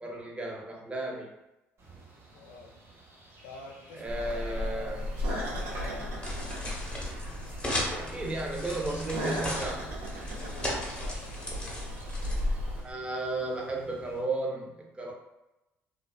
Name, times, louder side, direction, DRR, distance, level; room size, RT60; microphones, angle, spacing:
voice 1, 0.0-1.3 3.9-5.1 8.0-9.9 12.8-15.1, right 2 dB, 20° right, -1 dB, 0.7 m, -34 dB
sound 1, 1.8-14.2, right 3 dB, 50° right, 1.1 m, -51 dB
voice 2, 2.3-2.8 3.4-5.1 5.4-6.1 10.4-11.3, left 3 dB, 85° left, 0 dB, 0.4 m, -47 dB
sound 2, 4.0-12.8, left 1 dB, 85° right, 0.8 m, -35 dB
sound 3, 4.9-12.9, left 1 dB, 20° left, 0.8 m, -37 dB
2.4 x 2.3 x 2.2 m, 0.96 s
hypercardioid pair, 65°, 6 cm